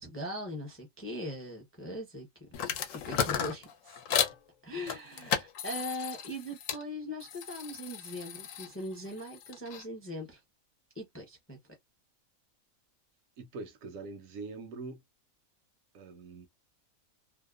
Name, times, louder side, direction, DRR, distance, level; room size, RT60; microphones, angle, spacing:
voice 1, 0.0-2.5 2.9-4.0 4.6-10.4 10.9-11.6, left 1 dB, 15° left, 0.5 m, -40 dB
sound 1, 2.5-4.4 4.9-6.8 7.2-9.8, left 8 dB, 70° left, 0.9 m, -34 dB
voice 2, 13.4-15.0 15.9-16.5, right 3 dB, 75° right, 1.0 m, -43 dB
2.7 x 2.0 x 2.3 m
omnidirectional pair, 1.5 m